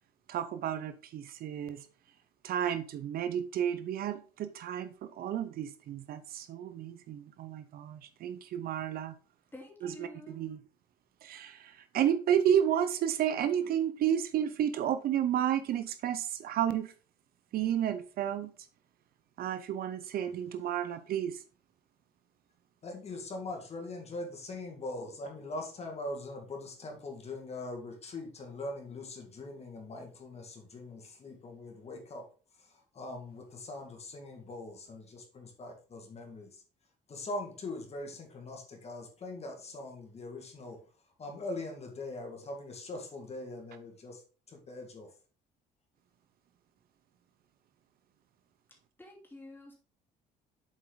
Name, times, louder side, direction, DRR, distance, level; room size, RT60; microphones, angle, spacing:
voice 1, 0.3-1.9 2.4-9.1 9.8-10.6 11.2-16.9 17.5-18.5 19.4-21.4, right 10 dB, 65° right, 0.8 m, -31 dB
voice 2, 9.5-10.4 49.0-49.7, left 2 dB, 10° left, 2.9 m, -49 dB
voice 3, 22.8-32.3 32.6-36.6 37.1-40.8 41.2-44.2 44.5-45.1, left 2 dB, 40° left, 2.1 m, -42 dB
7.5 x 4.5 x 3.9 m
cardioid pair, 110°, 17 cm